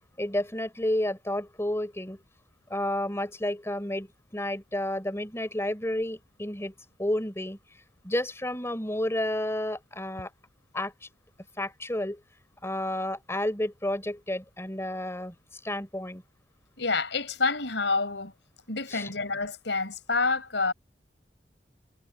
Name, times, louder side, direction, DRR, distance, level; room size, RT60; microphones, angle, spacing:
voice 1, 0.0-2.2 2.7-6.7 7.0-7.6 8.0-10.3 10.7-11.1 11.6-12.2 12.6-15.3 15.6-16.2 18.9-19.1, left 1 dB, 15° left, 3.7 m, -31 dB
voice 2, 16.8-18.3 18.7-20.7, left 3 dB, 80° left, 4.6 m, -28 dB
head